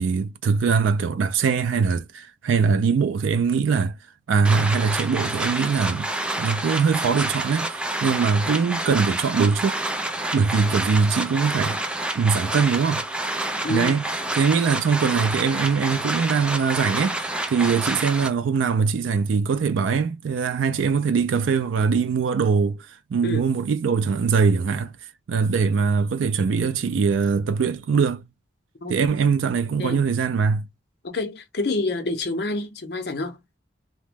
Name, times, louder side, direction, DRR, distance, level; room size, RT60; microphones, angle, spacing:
voice 1, 0.0-4.0 4.3-6.1 6.4-9.8 10.3-11.8 12.1-13.0 13.7-14.0 14.3-24.9 25.3-28.2 28.9-30.6, right 5 dB, 85° right, 0.4 m, -22 dB
sound 1, 4.4-18.3, right 1 dB, 5° right, 0.3 m, -28 dB
voice 2, 13.6-13.9 23.2-23.5 28.8-29.0 29.8-30.0 31.0-33.6, left 2 dB, 55° left, 0.7 m, -28 dB
2.9 x 2.1 x 3.3 m
head